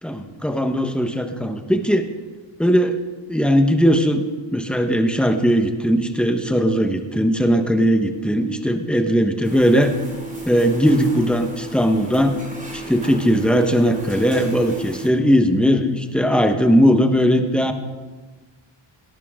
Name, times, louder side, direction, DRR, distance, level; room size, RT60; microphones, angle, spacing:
voice 1, 0.0-2.0 2.6-3.0 3.3-4.2 4.5-9.9 10.4-12.4 12.7-17.7, equal, ahead, 6 dB, 1.2 m, -18 dB
sound 1, 9.4-15.1, right 2 dB, 15° right, 3.0 m, -34 dB
18.0 x 18.0 x 3.8 m, 1.4 s
wide cardioid pair, 125°, 48 cm